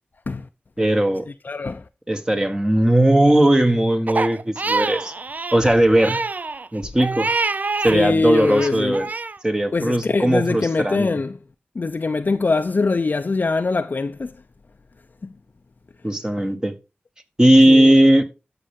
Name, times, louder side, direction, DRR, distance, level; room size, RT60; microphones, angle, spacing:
voice 1, 0.8-1.3 2.1-5.1 5.5-6.2 6.7-7.3 7.8-9.1 9.4-11.1 16.0-16.8 17.4-18.2, right 1 dB, 20° right, 1.3 m, -17 dB
voice 2, 1.4-1.8 7.9-9.0 9.7-11.4 11.8-14.3 15.2-15.3 17.7-17.9, left 3 dB, 50° left, 0.5 m, -22 dB
Crying sobbing, 4.1-8.0 8.3-9.4, right 3 dB, 45° right, 0.4 m, -26 dB
13.0 x 5.6 x 3.6 m
wide cardioid pair, 75°, 4 cm